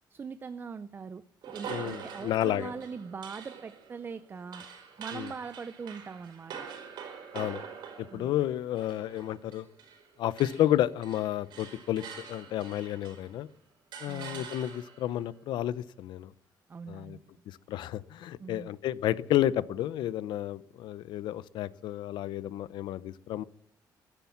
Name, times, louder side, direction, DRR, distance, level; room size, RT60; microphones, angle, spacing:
voice 1, 0.1-1.2 1.5-4.7 5.0-6.5 8.1-8.3 14.1-14.5 16.7-17.2 18.4-18.7, right 5 dB, 30° right, 13 dB, 0.5 m, -41 dB
sound 1, 1.4-10.1 10.3-13.4 13.9-15.1, right 7 dB, 80° right, 4.3 m, -45 dB
voice 2, 1.7-2.7 5.1-5.3 7.3-7.6 8.0-9.7 10.2-13.5 14.0-16.3 16.9-17.2 17.5-23.4, left 12 dB, 85° left, 18 dB, 0.7 m, -31 dB
15.5 x 11.5 x 7.1 m, 0.69 s
cardioid pair, 150°, 8 cm